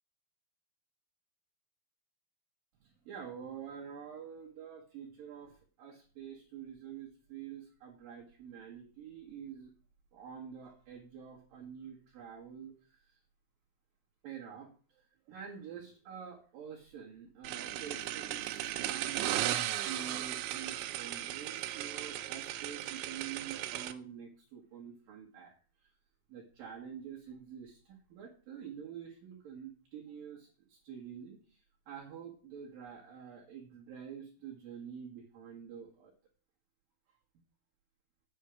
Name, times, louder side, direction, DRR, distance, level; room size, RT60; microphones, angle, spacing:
voice 1, 2.8-9.7 10.1-13.2 14.2-25.5 26.3-36.1, right 8 dB, 65° right, -2 dB, 2.4 m, -47 dB
sound 1, 17.4-23.9, right 13 dB, 80° right, 2.7 m, -36 dB
8.9 x 5.8 x 6.3 m, 0.40 s
omnidirectional pair, 5.9 m